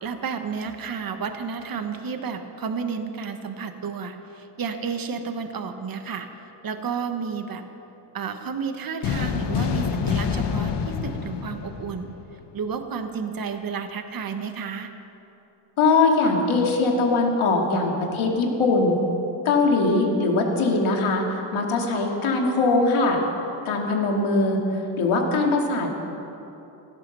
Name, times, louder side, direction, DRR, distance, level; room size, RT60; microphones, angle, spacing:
voice 1, 0.0-6.3 6.6-7.6 8.1-12.1 12.5-14.9, right 6 dB, 45° right, 7 dB, 1.3 m, -31 dB
sound 1, 9.0-12.5, left 7 dB, 60° left, 1.2 m, -27 dB
voice 2, 15.8-19.0 19.4-23.2 23.6-24.6 25.0-25.9, left 3 dB, 85° left, 0 dB, 2.6 m, -21 dB
16.0 x 13.0 x 6.8 m, 3.0 s
cardioid pair, 110°, 47 cm